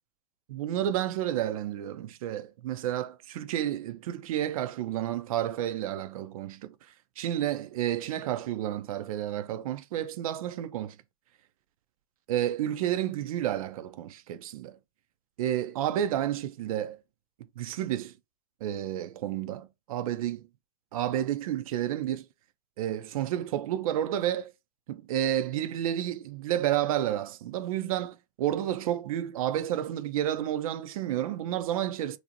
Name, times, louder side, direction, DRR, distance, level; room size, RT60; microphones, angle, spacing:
voice 1, 0.5-6.7 7.2-11.0 12.3-14.8 15.4-17.0 17.6-18.1 18.6-20.5 20.9-22.3 22.8-24.5 24.9-32.2, right 11 dB, 65° right, 0.4 m, -30 dB
2.6 x 2.0 x 2.8 m
hypercardioid pair, 100°, 20 cm